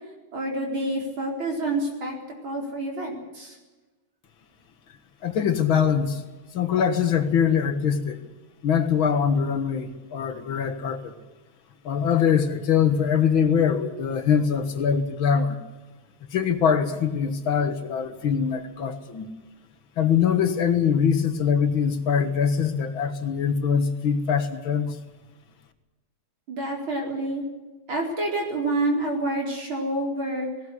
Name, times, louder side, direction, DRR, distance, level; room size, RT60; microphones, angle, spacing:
voice 1, 0.3-2.2 2.4-3.6 26.5-27.4 27.9-30.5, right 1 dB, 85° right, 1 dB, 5.1 m, -28 dB
voice 2, 5.2-6.2 6.5-8.2 8.6-11.1 11.8-15.6 16.3-19.3 20.0-25.0, left 7 dB, 85° left, 9 dB, 2.4 m, -23 dB
18.0 x 17.0 x 9.8 m, 1.2 s
omnidirectional pair, 2.2 m